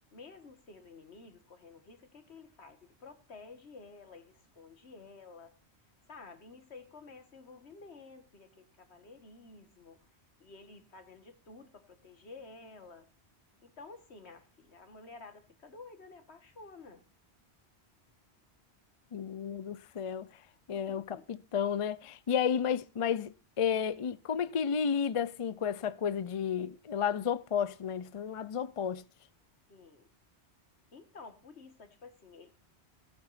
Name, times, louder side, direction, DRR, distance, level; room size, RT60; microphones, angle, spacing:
voice 1, 0.1-5.6 6.1-10.0 10.4-13.1 13.6-17.1 20.7-21.2 29.7-30.1 30.9-32.5, left 3 dB, 80° left, 1.9 m, -52 dB
voice 2, 19.1-20.3 20.7-29.0, left 7 dB, 40° left, 0.5 m, -32 dB
17.0 x 9.1 x 2.5 m
omnidirectional pair, 1.1 m